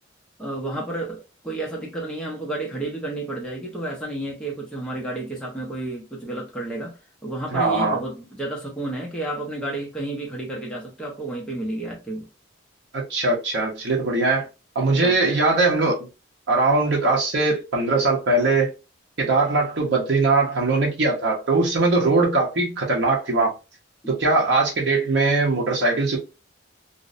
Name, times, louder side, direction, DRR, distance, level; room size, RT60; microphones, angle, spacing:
voice 1, 0.4-12.3 15.0-15.2, right 2 dB, 5° left, 0.5 m, -31 dB
voice 2, 7.5-8.0 12.9-14.5 14.7-16.0 16.5-18.7 19.2-23.5 24.1-26.2, right 3 dB, 55° right, 0.7 m, -21 dB
2.6 x 2.0 x 2.4 m
head